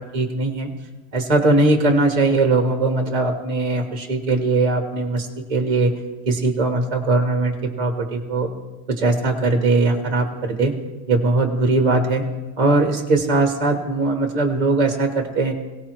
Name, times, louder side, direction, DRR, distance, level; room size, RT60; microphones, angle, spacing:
voice 1, 0.1-0.7 1.1-5.9 6.3-8.5 8.9-10.7 11.1-12.2 12.6-15.5, right 2 dB, 25° right, 3 dB, 1.4 m, -20 dB
22.0 x 17.5 x 3.1 m, 1.2 s
omnidirectional pair, 1.8 m